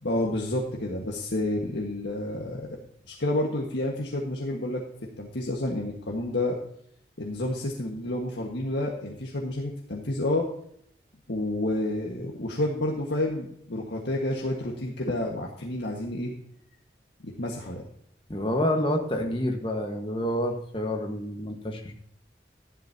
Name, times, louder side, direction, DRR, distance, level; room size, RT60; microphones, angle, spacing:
voice 1, 0.0-2.7 3.1-4.8 5.2-6.6 7.2-10.5 11.3-16.3 17.2-17.8, left 1 dB, 80° left, -1 dB, 1.6 m, -29 dB
voice 2, 18.3-21.9, left 1 dB, 30° left, 1 dB, 1.4 m, -28 dB
12.5 x 11.0 x 2.8 m, 0.68 s
head